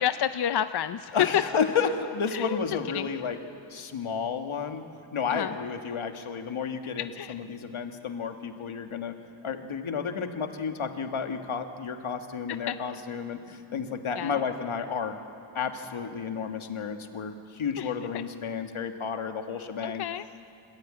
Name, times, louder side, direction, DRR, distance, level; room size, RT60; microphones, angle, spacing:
voice 1, 0.0-1.4 2.3-2.6 2.9-3.1 5.3-5.5 7.2-7.3 12.7-12.8 14.2-14.4 17.8-17.9 19.8-20.3, left 10 dB, 55° left, 11 dB, 0.5 m, -28 dB
voice 2, 1.1-3.4 3.7-4.8 5.1-9.1 9.4-15.1 15.5-20.0, left 6 dB, 80° left, 6 dB, 1.6 m, -31 dB
29.0 x 14.5 x 8.9 m, 2.5 s
wide cardioid pair, 135°, 48 cm